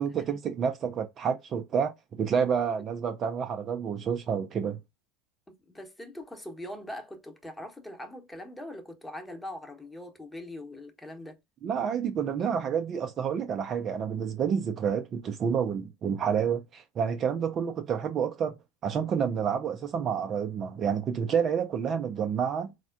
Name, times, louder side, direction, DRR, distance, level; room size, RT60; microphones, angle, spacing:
voice 1, 0.0-4.8 11.6-18.6 18.8-22.7, right 7 dB, 40° right, 0.5 m, -29 dB
voice 2, 5.7-11.4, left 1 dB, 10° left, 1.0 m, -42 dB
4.1 x 2.2 x 2.5 m
hypercardioid pair, 75°, 0 cm